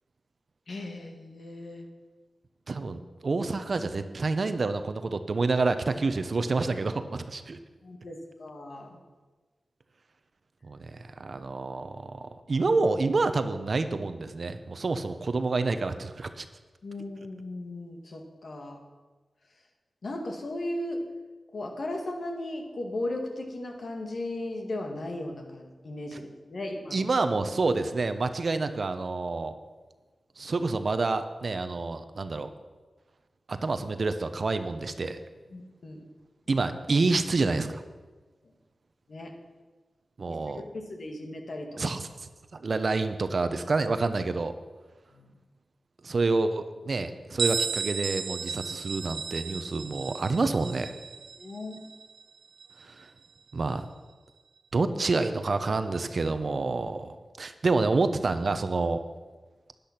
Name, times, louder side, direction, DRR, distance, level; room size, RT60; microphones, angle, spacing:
voice 1, 0.7-1.9 7.8-8.9 16.8-18.8 20.0-21.0 21.5-27.0 35.5-36.0 39.1-39.3 40.3-41.7 45.1-45.3 51.4-51.8, left 1 dB, 65° left, 3 dB, 2.0 m, -36 dB
voice 2, 2.7-7.6 10.6-16.5 26.9-29.6 30.4-32.5 33.5-35.2 36.5-37.8 40.2-40.6 41.8-42.1 42.5-44.5 46.0-50.9 52.8-53.1 53.5-53.9 54.7-59.0, right 3 dB, 60° right, 10 dB, 0.8 m, -28 dB
Bell, 47.4-52.9, right 5 dB, 85° right, 0.5 m, -34 dB
10.5 x 10.5 x 6.0 m, 1.3 s
cardioid pair, 60°, 0 cm